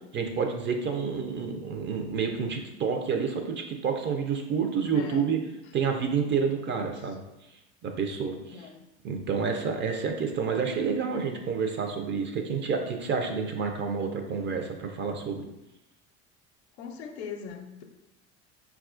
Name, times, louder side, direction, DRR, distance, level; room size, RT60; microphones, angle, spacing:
voice 1, 0.1-5.4 5.7-7.2 7.8-8.4 9.0-15.4, right 6 dB, 35° right, 4 dB, 0.5 m, -29 dB
voice 2, 4.9-5.3 5.8-5.9 6.7-6.8 8.5-8.8 16.8-17.8, left 7 dB, 80° left, 4 dB, 0.5 m, -40 dB
4.1 x 2.3 x 2.5 m, 0.93 s
hypercardioid pair, 85°, 33 cm